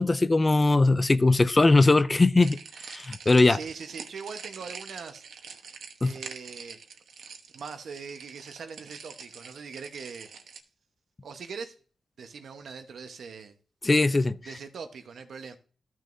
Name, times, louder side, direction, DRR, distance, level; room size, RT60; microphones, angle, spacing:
voice 1, 0.0-2.6 2.8-3.6 6.0-6.1 13.8-14.3, left 2 dB, 20° left, 0.3 m, -20 dB
sound 1, 2.4-10.6, right 6 dB, 90° right, 1.0 m, -45 dB
voice 2, 3.2-5.2 6.0-6.8 7.5-10.3 11.2-11.7 12.2-13.5 14.5-15.6, right 5 dB, 65° right, 1.0 m, -41 dB
14.0 x 6.2 x 2.6 m
wide cardioid pair, 180°, 0 cm